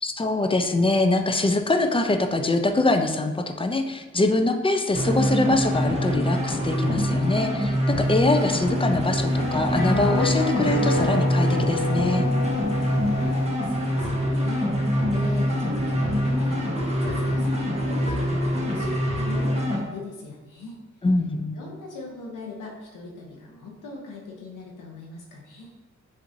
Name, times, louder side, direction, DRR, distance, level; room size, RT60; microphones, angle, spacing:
voice 1, 0.0-12.3 21.0-21.6, left 2 dB, 20° left, 6 dB, 0.4 m, -23 dB
sound 1, 4.9-19.8, equal, 20° right, 1.1 m, -24 dB
sound 2, 7.9-13.5, left 3 dB, 65° left, 1.3 m, -30 dB
voice 2, 13.2-14.7 15.1-20.8 21.5-25.7, left 3 dB, 85° left, -2 dB, 0.8 m, -40 dB
7.3 x 2.6 x 2.6 m, 1.2 s
cardioid pair, 75°, 31 cm